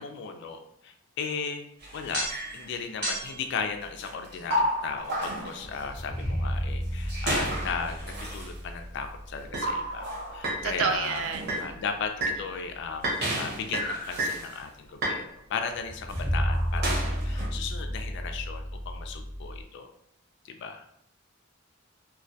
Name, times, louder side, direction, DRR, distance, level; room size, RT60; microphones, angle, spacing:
voice 1, 0.0-1.7 1.9-11.3 11.6-13.1 13.4-19.9 20.4-20.9, left 5 dB, 60° left, 6 dB, 0.3 m, -36 dB
sound 1, 1.8-2.7 3.0-3.4 4.0-6.3 7.0-8.5 9.4-10.7 11.0-11.7 12.2-12.4 13.0-14.5 14.9-15.2 15.9-17.5, right 1 dB, 55° right, 0.8 m, -31 dB
sound 2, 5.6-10.3 10.6-10.7 15.7-19.6, equal, 5° right, 0.5 m, -32 dB
voice 2, 10.6-11.8, right 6 dB, 75° right, 6 dB, 0.3 m, -29 dB
2.2 x 2.1 x 2.6 m, 0.77 s
head